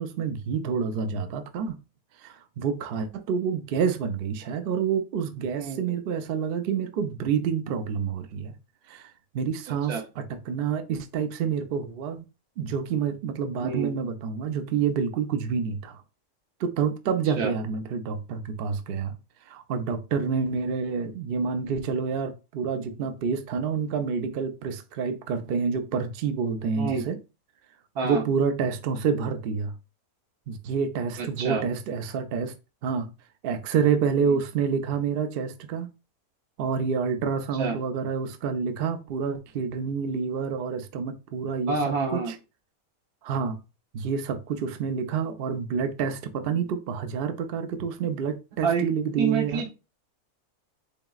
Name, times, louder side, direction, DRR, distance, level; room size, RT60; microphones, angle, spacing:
voice 1, 0.0-1.8 2.2-8.5 8.9-12.2 12.6-16.0 16.6-19.1 19.5-27.2 28.0-29.7 30.5-32.5 32.8-33.1 33.4-35.9 36.6-42.2 43.2-43.6 43.9-49.6, right 6 dB, 65° right, 0.5 m, -28 dB
voice 2, 13.6-13.9 17.4-17.5 26.8-27.1 27.9-28.2 31.2-31.6 34.2-34.4 37.5-37.8 41.7-42.3 48.6-48.9 49.2-49.7, right 4 dB, 85° right, 1.4 m, -27 dB
3.9 x 3.7 x 2.3 m
omnidirectional pair, 1.5 m